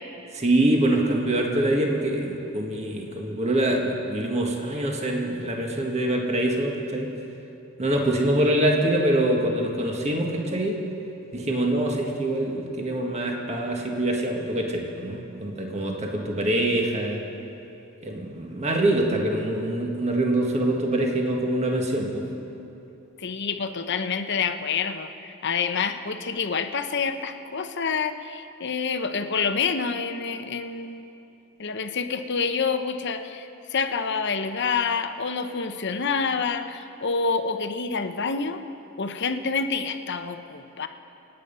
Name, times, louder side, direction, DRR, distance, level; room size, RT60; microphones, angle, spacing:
voice 1, 0.3-7.1 7.8-10.8 11.3-17.2 18.0-22.2, right 1 dB, 30° right, 0 dB, 1.8 m, -24 dB
voice 2, 23.2-31.0 31.6-38.6 39.0-40.9, left 5 dB, 55° left, 8 dB, 0.8 m, -27 dB
27.0 x 9.2 x 5.5 m, 2.8 s
head